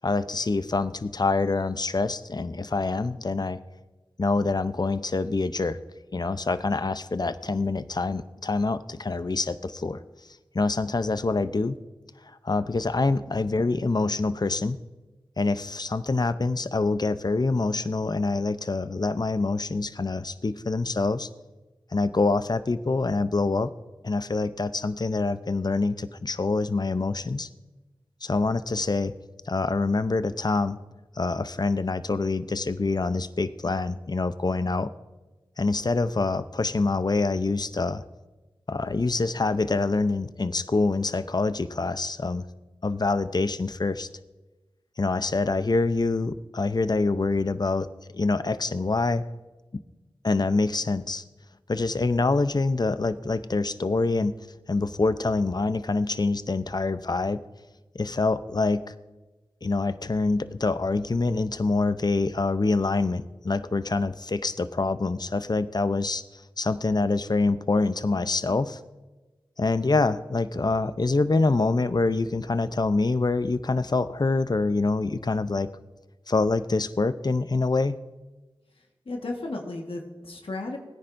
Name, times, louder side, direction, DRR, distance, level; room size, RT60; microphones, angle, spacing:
voice 1, 0.0-3.6 4.2-5.8 6.1-10.0 10.5-11.8 12.4-14.8 15.4-21.3 21.9-23.7 24.0-27.5 28.2-29.1 29.5-30.8 31.2-34.9 35.6-38.0 38.7-42.5 42.8-44.1 45.0-47.9 48.1-49.2 50.2-51.2 51.7-54.3 54.7-57.4 57.9-58.8 59.6-66.2 66.6-68.8 69.6-75.7 76.3-77.9, left 3 dB, 50° left, 13 dB, 0.6 m, -25 dB
voice 2, 79.0-80.8, left 2 dB, 80° left, 1 dB, 1.5 m, -34 dB
20.5 x 10.0 x 2.6 m, 1.2 s
cardioid pair, 40°, 9 cm